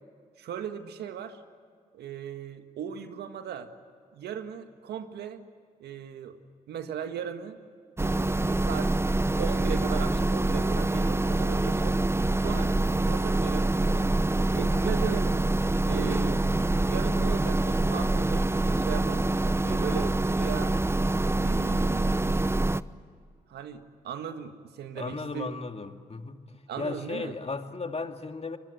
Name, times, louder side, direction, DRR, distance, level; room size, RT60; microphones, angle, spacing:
voice 1, 0.4-1.4 1.9-3.7 4.1-5.4 5.8-6.4 6.7-7.6 8.0-9.0 9.4-12.0 12.4-14.1 14.5-15.4 15.8-19.3 19.6-20.8 21.3-22.2 23.5-25.5 26.7-27.3, right 8 dB, 80° right, 8 dB, 1.8 m, -38 dB
sound 1, 8.0-22.8, right 2 dB, 15° right, 0.8 m, -25 dB
voice 2, 19.6-20.1 25.0-26.4 26.8-28.6, left 4 dB, 40° left, 6 dB, 2.3 m, -36 dB
24.5 x 22.5 x 9.9 m, 2.1 s
supercardioid pair, 45°, 17 cm